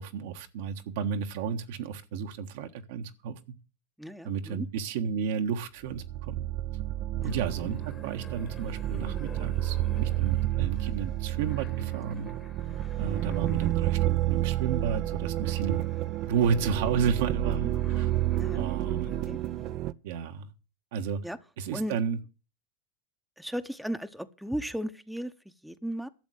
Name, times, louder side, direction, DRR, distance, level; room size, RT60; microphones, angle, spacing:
voice 1, 0.0-3.4 4.2-6.5 7.2-12.3 13.0-15.9 16.3-18.1 18.5-19.3 20.0-20.5 20.9-21.2 21.6-22.2, right 6 dB, 70° right, 1.5 m, -32 dB
voice 2, 4.0-4.7 7.2-7.3 17.6-17.7 18.3-18.6 19.2-19.4 21.2-21.4 21.7-22.0 23.4-26.1, equal, ahead, 0.9 m, -35 dB
sound 1, 5.9-19.9, right 14 dB, 50° right, 0.6 m, -30 dB
sound 2, 7.2-19.8, left 5 dB, 25° left, 1.4 m, -51 dB
12.0 x 7.2 x 8.1 m
hypercardioid pair, 105°, 0 cm